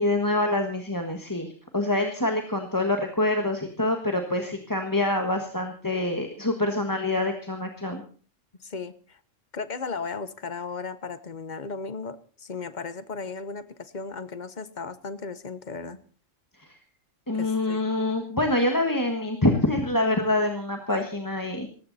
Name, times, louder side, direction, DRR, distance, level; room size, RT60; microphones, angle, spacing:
voice 1, 0.0-8.0 16.6-16.8 17.3-21.7, left 2 dB, 15° left, 4 dB, 1.6 m, -26 dB
voice 2, 8.6-9.2 9.5-16.0 17.4-17.8 20.8-21.1, left 4 dB, 40° left, 13 dB, 1.1 m, -36 dB
18.5 x 15.0 x 4.2 m, 0.41 s
omnidirectional pair, 1.3 m